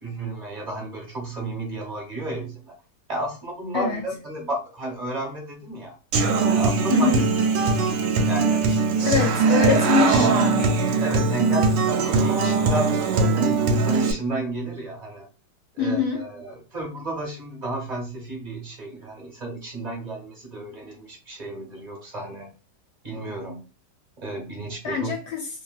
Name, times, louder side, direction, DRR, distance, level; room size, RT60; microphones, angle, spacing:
voice 1, 0.0-2.8 3.1-6.0 6.5-7.7 8.2-8.6 9.0-9.4 9.7-10.3 11.0-13.0 13.3-15.3 15.7-22.5 23.0-23.6 24.2-25.1, right 2 dB, 30° right, 0.8 m, -32 dB
Human voice / Acoustic guitar, 6.1-14.1, right 4 dB, 90° right, 1.3 m, -21 dB
voice 2, 6.9-7.2 9.0-10.9 15.8-16.2 24.8-25.5, left 6 dB, 75° left, 1.1 m, -24 dB
2.8 x 2.7 x 2.3 m
omnidirectional pair, 1.9 m